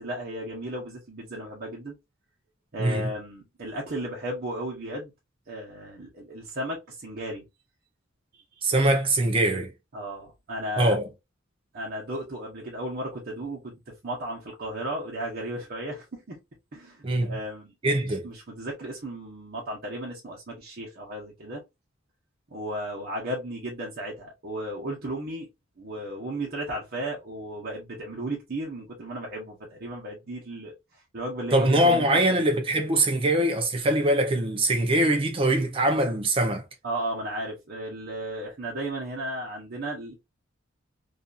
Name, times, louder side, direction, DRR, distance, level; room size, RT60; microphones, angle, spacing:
voice 1, 0.0-1.9 2.7-5.1 5.5-7.5 9.9-11.0 11.7-16.4 16.7-17.9 18.2-21.6 22.5-25.5 25.8-30.7 31.1-32.5 36.8-40.1, right 1 dB, 50° right, 0.9 m, -35 dB
voice 2, 2.8-3.1 8.6-9.7 10.8-11.1 17.0-17.4 17.8-18.3 31.5-36.6, right 1 dB, 25° right, 0.4 m, -23 dB
2.7 x 2.4 x 2.3 m
head